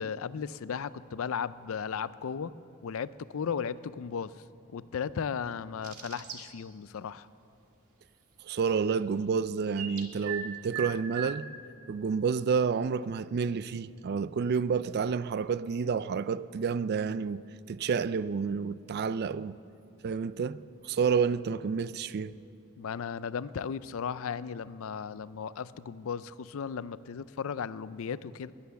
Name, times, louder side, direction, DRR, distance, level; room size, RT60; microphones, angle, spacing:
voice 1, 0.0-2.6 2.8-4.4 4.7-7.3 22.8-28.5, left 6 dB, 65° left, 0.4 m, -35 dB
sound 1, 5.8-6.4 9.8-10.5 10.7-11.3, right 7 dB, 85° right, 1.6 m, -37 dB
voice 2, 8.4-11.5 11.9-17.4 17.7-19.6 20.0-22.4, right 6 dB, 45° right, 0.3 m, -29 dB
19.5 x 10.5 x 6.9 m
head